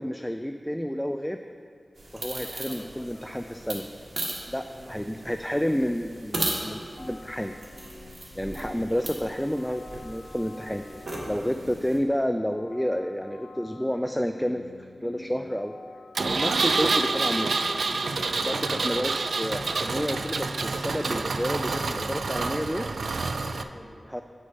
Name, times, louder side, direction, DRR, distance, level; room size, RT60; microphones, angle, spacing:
voice 1, 0.0-1.4 2.1-3.9 4.5-7.5 8.4-10.8 11.2-15.7 16.2-17.6 18.4-22.9 24.1-24.2, equal, 5° left, 6 dB, 0.3 m, -30 dB
sound 1, 2.0-12.0, right 1 dB, 60° right, 1.7 m, -37 dB
voice 2, 2.3-3.9 4.7-4.9 11.0-11.3 17.8-18.1 22.9-24.1, left 1 dB, 20° left, 0 dB, 1.2 m, -48 dB
sound 2, 7.0-21.7, left 3 dB, 60° left, 0.6 m, -47 dB
Engine, 16.2-23.6, right 3 dB, 90° right, 0.3 m, -27 dB
7.8 x 6.3 x 5.4 m, 2.2 s
wide cardioid pair, 90°, 0 cm